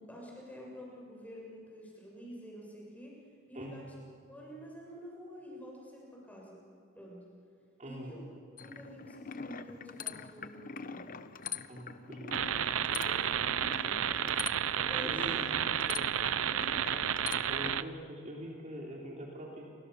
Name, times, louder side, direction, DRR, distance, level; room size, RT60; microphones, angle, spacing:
voice 1, 0.0-3.8 4.3-6.6 6.9-7.2 7.8-8.2 8.6-11.0 13.0-14.0 14.7-15.4 15.9-16.1 16.5-16.8, equal, 5° left, -3 dB, 6.8 m, -48 dB
voice 2, 3.5-3.9 7.8-8.1 11.7-12.4 12.9-13.0 15.0-15.4 16.9-17.2 17.5-19.6, equal, 35° right, -2 dB, 3.4 m, -44 dB
sound 1, 8.6-17.8, left 6 dB, 40° left, 0.9 m, -44 dB
sound 2, 12.3-17.8, right 9 dB, 75° right, 0.6 m, -31 dB
30.0 x 24.5 x 6.9 m, 2.3 s
head